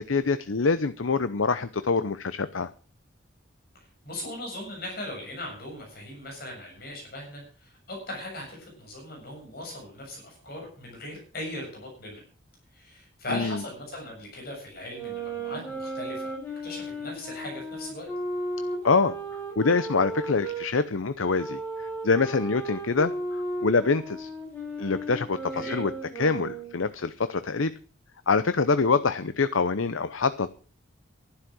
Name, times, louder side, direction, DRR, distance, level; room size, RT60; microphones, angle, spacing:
voice 1, 0.0-2.7 13.3-13.6 18.8-19.2 19.6-24.3 24.8-25.9 26.2-27.7 28.3-30.5, left 4 dB, 90° left, 13 dB, 0.8 m, -25 dB
voice 2, 3.7-12.2 12.7-16.3 16.6-18.1 25.5-25.8, left 1 dB, 50° left, 1 dB, 7.1 m, -39 dB
sound 1, 14.8-20.7 21.4-26.8, right 1 dB, 10° left, 7.4 m, -35 dB
13.0 x 11.5 x 6.2 m, 0.39 s
head